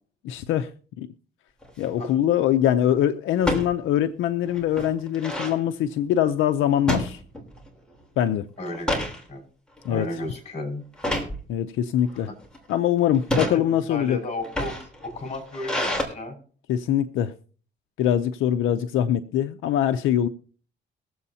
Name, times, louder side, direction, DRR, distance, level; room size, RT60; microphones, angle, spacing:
voice 1, 0.2-0.7 1.0-1.1 1.8-7.2 8.2-8.5 9.8-10.1 11.5-12.3 12.7-14.2 16.7-17.3 18.0-20.3, left 10 dB, 85° left, 0.6 m, -23 dB
sound 1, 1.6-2.0 3.4-3.7 4.2-4.3 4.5-5.6 6.9-7.7 8.0-8.3 8.7-9.2 9.8-10.0 11.0-11.4 12.1-12.6 13.1-13.6 14.3-16.0, left 1 dB, 5° left, 3.4 m, -28 dB
voice 2, 8.6-9.4 9.9-10.8 12.1-12.2 13.3-13.6 13.9-16.4, left 1 dB, 35° left, 5.2 m, -34 dB
22.5 x 7.8 x 2.8 m
cardioid pair, 90°, 20 cm